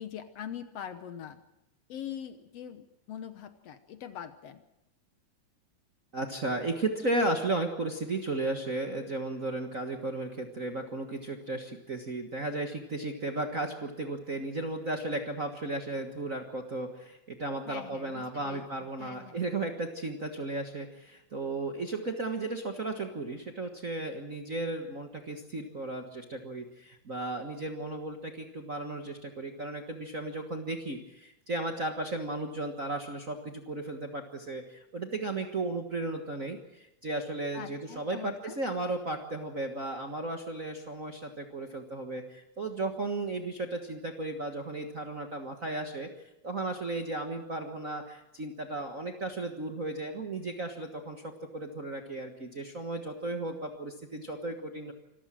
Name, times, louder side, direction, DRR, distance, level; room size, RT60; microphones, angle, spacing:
voice 1, 0.0-1.4 1.9-4.6 17.7-18.6 19.0-19.4 37.5-38.6, left 9 dB, 65° left, 10 dB, 1.9 m, -42 dB
voice 2, 6.1-46.1 46.4-54.9, right 2 dB, 40° right, 3 dB, 1.3 m, -35 dB
26.0 x 14.5 x 7.6 m, 0.91 s
omnidirectional pair, 3.4 m